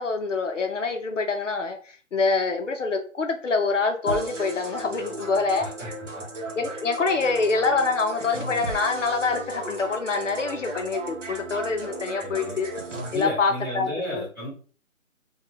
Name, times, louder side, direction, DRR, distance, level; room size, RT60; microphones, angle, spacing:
voice 1, 0.0-5.7 6.6-12.7 13.1-14.2, left 4 dB, 65° left, 0.5 m, -25 dB
sound 1, 4.1-13.2, right 2 dB, 60° right, 0.7 m, -36 dB
voice 2, 5.6-5.9 6.1-6.5 12.2-12.6 13.1-14.5, left 1 dB, 20° right, 1.0 m, -33 dB
2.3 x 2.2 x 3.1 m
hypercardioid pair, 180°, 41 cm